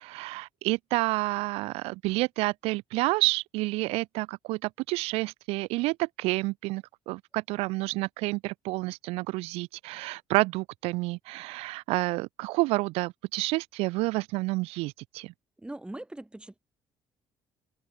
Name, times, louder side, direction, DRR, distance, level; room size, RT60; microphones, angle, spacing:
voice 1, 0.0-15.3, right 22 dB, 90° right, 0.4 m, -29 dB
voice 2, 15.6-16.6, right 1 dB, 10° right, 4.6 m, -41 dB
open air
cardioid pair, 90°, 10 cm